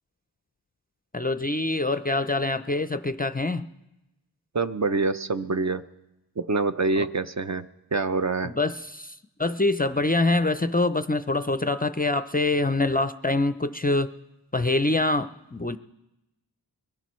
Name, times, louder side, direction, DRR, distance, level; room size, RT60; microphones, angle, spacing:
voice 1, 1.1-3.7 7.0-7.1 8.4-14.1 14.5-15.8, left 2 dB, 20° left, 10 dB, 0.4 m, -25 dB
voice 2, 4.5-5.8 6.4-8.5, right 3 dB, 40° right, 10 dB, 0.5 m, -26 dB
22.5 x 19.5 x 3.1 m, 0.96 s
wide cardioid pair, 80°, 43 cm